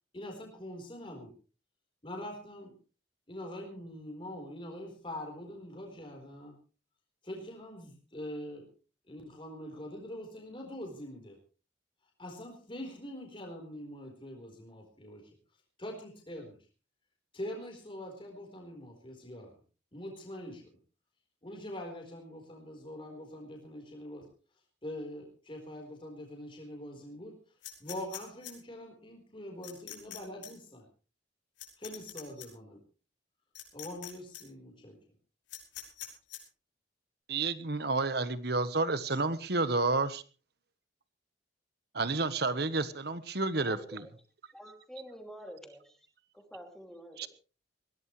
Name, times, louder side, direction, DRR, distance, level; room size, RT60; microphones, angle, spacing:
voice 1, 0.1-1.3 2.0-2.7 3.3-6.6 7.2-8.6 9.1-11.4 12.2-15.4 15.8-16.6 17.3-19.6 19.9-20.8 21.4-24.3 24.8-27.5 27.8-30.9 31.8-32.8 33.7-35.0, left 1 dB, 25° left, 1 dB, 4.3 m, -44 dB
sound 1, 27.6-28.5 29.6-30.2 30.4-30.5 31.6-32.5 33.6-34.1 34.3-34.4 35.5-36.4, left 13 dB, 75° left, 5.5 m, -43 dB
voice 2, 37.3-40.2 41.9-44.0 47.2-47.3, right 3 dB, 55° right, 13 dB, 1.2 m, -30 dB
voice 3, 43.7-44.0 44.5-46.0 46.3-47.3, equal, ahead, 3 dB, 2.8 m, -48 dB
21.0 x 17.0 x 3.3 m, 0.36 s
head